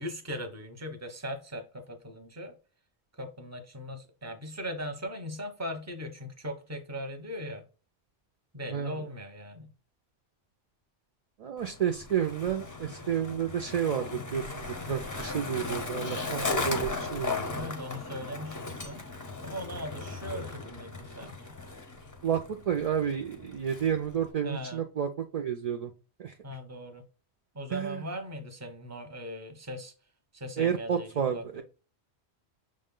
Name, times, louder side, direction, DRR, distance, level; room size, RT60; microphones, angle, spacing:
voice 1, 0.0-2.5 3.2-7.6 8.5-9.7 17.5-19.0 19.4-21.6 24.4-24.8 26.4-27.0 27.5-29.9 30.3-31.6, equal, 15° right, 0.7 m, -39 dB
voice 2, 11.4-17.3 22.2-22.4 22.7-25.9 26.2-26.3 27.7-28.0 30.6-31.6, right 8 dB, 60° right, 0.4 m, -30 dB
Skateboard, 11.6-24.3, left 3 dB, 25° left, 0.5 m, -37 dB
6.2 x 2.1 x 3.7 m
omnidirectional pair, 1.1 m